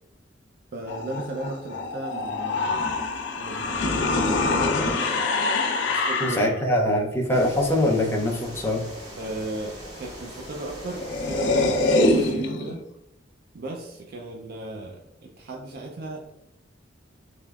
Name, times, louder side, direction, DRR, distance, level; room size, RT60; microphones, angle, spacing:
voice 1, 0.7-2.7 3.4-4.8 5.9-6.5 9.2-12.8 13.5-16.3, right 2 dB, 50° right, 0 dB, 0.4 m, -35 dB
sound 1, 0.9-6.6 10.5-10.6 10.8-12.8, left 2 dB, 60° left, 0.4 m, -25 dB
voice 2, 6.2-8.8, left 1 dB, 10° left, 0 dB, 0.5 m, -23 dB
sound 2, 7.3-12.3, equal, 20° right, 1.1 m, -41 dB
3.4 x 3.1 x 2.3 m, 0.86 s
head